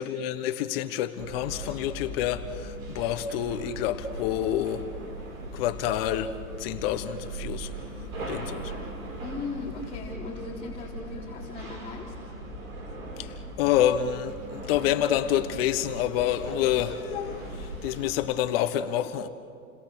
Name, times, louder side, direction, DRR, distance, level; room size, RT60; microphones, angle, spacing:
voice 1, 0.0-4.8 5.5-7.7 8.2-8.7 13.2-19.3, left 11 dB, 45° left, 1.3 m, -28 dB
sound 1, 1.2-18.2, right 1 dB, 70° right, 7.7 m, -39 dB
voice 2, 9.2-12.1, left 4 dB, 15° left, 3.8 m, -38 dB
29.5 x 21.5 x 6.6 m
hypercardioid pair, 135°, 42 cm